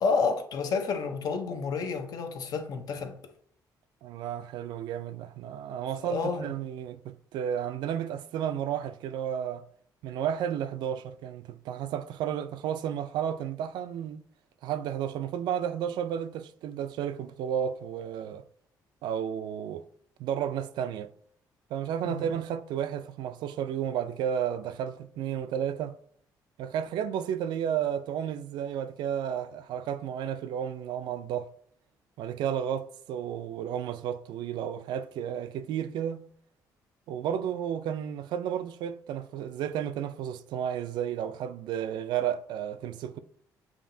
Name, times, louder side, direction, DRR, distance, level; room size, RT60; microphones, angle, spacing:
voice 1, 0.0-3.2 6.0-6.5 22.0-22.3, left 5 dB, 60° left, 0.7 m, -30 dB
voice 2, 4.0-9.6 10.0-14.2 14.6-18.4 19.0-19.8 20.2-21.1 21.7-26.0 26.6-31.5 32.2-36.3 37.1-43.2, right 9 dB, 85° right, 0.4 m, -32 dB
7.1 x 2.8 x 2.7 m
cardioid pair, 125°, 7 cm